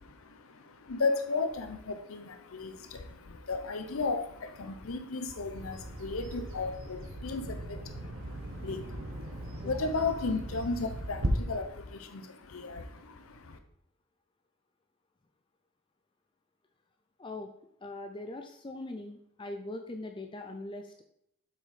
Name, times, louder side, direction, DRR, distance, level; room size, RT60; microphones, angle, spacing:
voice 1, 0.0-13.6, left 3 dB, 80° left, 8 dB, 0.7 m, -35 dB
Bird vocalization bird call bird song, 5.5-11.3, right 1 dB, 75° right, 1.2 m, -39 dB
voice 2, 17.2-17.5 17.8-21.0, left 2 dB, 25° left, 6 dB, 0.4 m, -41 dB
7.7 x 6.0 x 4.2 m, 0.72 s
head